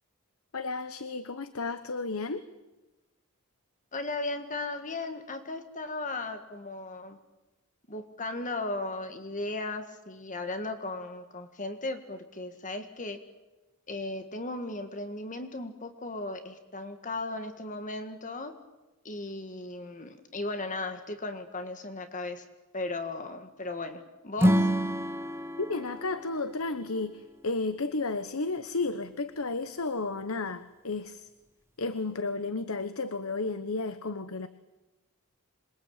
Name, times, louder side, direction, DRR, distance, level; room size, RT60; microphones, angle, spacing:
voice 1, 0.5-2.5 25.6-31.3 31.8-34.5, left 3 dB, 65° left, 12 dB, 1.1 m, -33 dB
voice 2, 3.9-7.2 7.9-13.2 13.9-18.5 19.0-22.5 22.7-24.7, left 2 dB, 35° left, 8 dB, 1.8 m, -36 dB
Acoustic guitar / Strum, 24.4-27.7, equal, 10° right, 1.3 m, -28 dB
27.0 x 22.0 x 8.9 m, 1.1 s
head